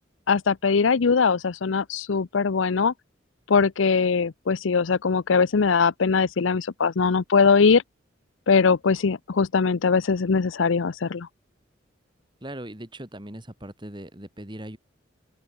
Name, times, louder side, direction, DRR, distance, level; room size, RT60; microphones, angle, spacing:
voice 1, 0.3-2.9 3.5-7.8 8.5-11.3, left 5 dB, 85° left, 0.6 m, -21 dB
voice 2, 12.4-14.8, right 1 dB, 25° right, 2.8 m, -39 dB
open air
head